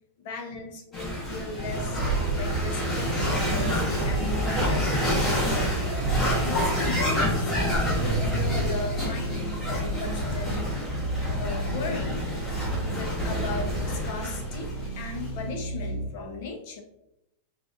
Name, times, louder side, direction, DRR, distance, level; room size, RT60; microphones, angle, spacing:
voice 1, 0.2-2.0 2.3-3.6 4.0-5.9 6.4-10.7 11.4-12.3 12.9-16.8, left 4 dB, 60° left, 4 dB, 0.7 m, -37 dB
sound 1, 0.9-15.3, equal, 20° left, 1.2 m, -28 dB
sound 2, 1.5-16.1, right 3 dB, 85° right, 0.6 m, -32 dB
4.0 x 2.5 x 2.5 m, 0.86 s
supercardioid pair, 140°, 0 cm